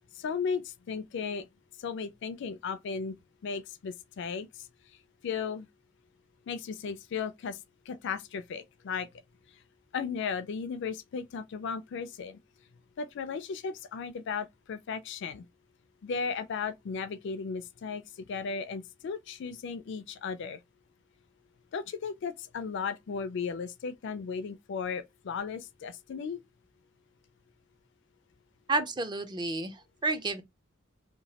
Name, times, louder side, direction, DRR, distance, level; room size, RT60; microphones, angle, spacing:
voice 1, 0.1-1.5 1.8-3.2 3.4-4.7 5.2-5.7 6.5-7.6 7.9-9.1 9.5-9.6 9.9-12.4 13.0-15.4 16.0-20.6 21.7-26.4, left 5 dB, 60° left, 0.3 m, -35 dB
voice 2, 28.7-30.4, right 3 dB, 20° right, 0.4 m, -31 dB
2.9 x 2.2 x 2.8 m
head